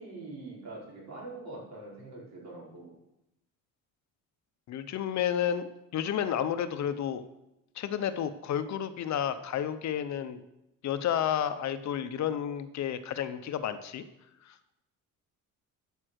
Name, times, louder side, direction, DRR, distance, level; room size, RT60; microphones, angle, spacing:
voice 1, 0.0-2.9, right 2 dB, 55° right, -4 dB, 4.7 m, -44 dB
voice 2, 4.7-7.2 7.8-10.4 10.8-14.0 14.5-14.6, left 9 dB, 55° left, 11 dB, 0.7 m, -31 dB
12.5 x 5.5 x 6.3 m, 0.88 s
cardioid pair, 120°, 33 cm